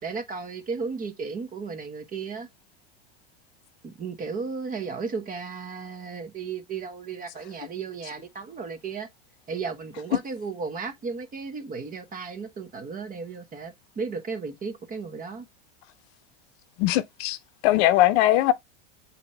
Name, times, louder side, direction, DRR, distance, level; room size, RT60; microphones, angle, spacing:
voice 1, 0.0-2.5 3.8-9.1 9.5-15.5, right 5 dB, 20° right, 1.1 m, -34 dB
voice 2, 16.8-17.4 17.6-18.5, left 15 dB, 55° left, 0.8 m, -20 dB
7.1 x 4.3 x 3.4 m
supercardioid pair, 130°, 38 cm